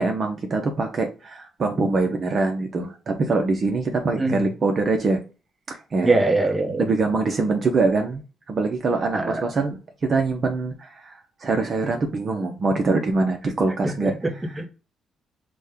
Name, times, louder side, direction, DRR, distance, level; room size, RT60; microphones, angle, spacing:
voice 1, 0.0-5.2 5.7-6.2 6.8-8.2 8.5-14.6, right 3 dB, 45° right, 0.7 m, -24 dB
voice 2, 6.0-6.8 9.1-9.4 13.8-14.3 14.6-14.7, right 2 dB, 15° right, 1.0 m, -22 dB
6.1 x 2.2 x 3.5 m
cardioid pair, 90°, 0 cm